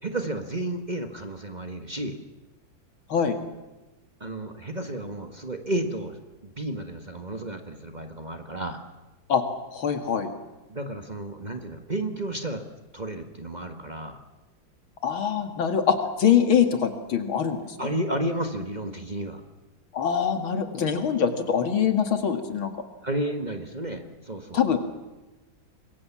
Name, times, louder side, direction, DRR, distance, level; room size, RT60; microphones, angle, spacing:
voice 1, 0.0-2.2 4.2-8.8 10.7-12.7 12.9-14.2 17.8-19.4 23.0-24.6, right 1 dB, 25° right, 6 dB, 1.5 m, -32 dB
voice 2, 9.7-10.3 15.0-17.6 19.9-22.7 24.5-24.8, left 7 dB, 80° left, 7 dB, 2.9 m, -23 dB
26.0 x 22.0 x 7.4 m, 1.1 s
omnidirectional pair, 2.2 m